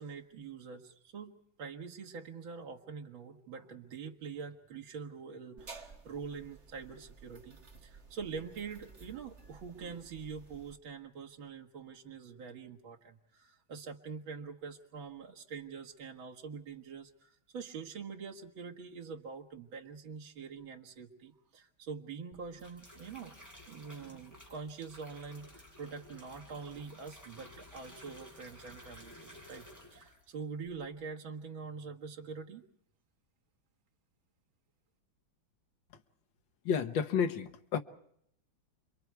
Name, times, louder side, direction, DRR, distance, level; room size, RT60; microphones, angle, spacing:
voice 1, 0.0-1.3 1.6-23.3 23.7-32.6, right 5 dB, 80° right, 2.4 m, -45 dB
sound 1, 5.6-10.8, right 4 dB, 35° right, 2.2 m, -54 dB
sound 2, 22.3-30.3 30.6-31.0, left 1 dB, 10° left, 5.4 m, -54 dB
voice 2, 36.7-37.8, left 7 dB, 70° left, 1.7 m, -31 dB
29.5 x 23.0 x 4.7 m
omnidirectional pair, 2.2 m